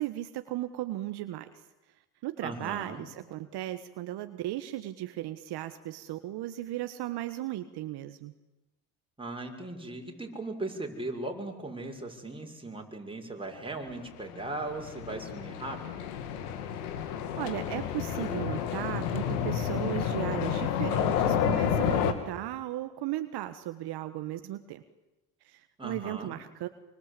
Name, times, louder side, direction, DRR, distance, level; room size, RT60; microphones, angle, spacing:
voice 1, 0.0-1.5 2.2-8.3 16.9-24.8 25.5-26.7, right 14 dB, 60° right, 9 dB, 1.6 m, -36 dB
voice 2, 2.4-3.0 9.2-16.0 25.8-26.3, right 2 dB, 10° right, 2 dB, 6.4 m, -38 dB
sound 1, 14.2-22.1, left 8 dB, 85° left, 2.7 m, -30 dB
26.0 x 24.5 x 8.5 m, 1.0 s
supercardioid pair, 80°, 44 cm